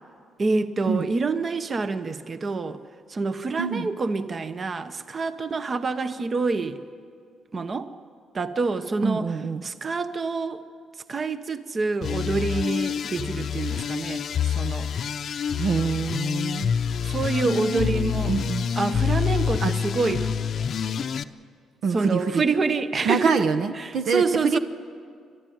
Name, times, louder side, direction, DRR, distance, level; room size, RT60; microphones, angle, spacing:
voice 1, 0.4-2.8 3.1-6.8 7.5-7.9 8.3-9.3 9.6-10.6 11.1-14.9 17.0-18.3 18.8-20.4 21.9-23.4 23.8-24.6, right 4 dB, 40° right, 10 dB, 1.0 m, -27 dB
voice 2, 3.6-3.9 9.0-9.6 15.6-16.7 17.5-18.0 18.3-18.7 19.6-19.7 21.8-22.4 23.0-24.6, right 5 dB, 70° right, 9 dB, 1.0 m, -25 dB
sound 1, 12.0-21.2, left 7 dB, 60° left, 0.7 m, -27 dB
29.0 x 12.5 x 9.4 m, 2.2 s
cardioid pair, 90°, 0 cm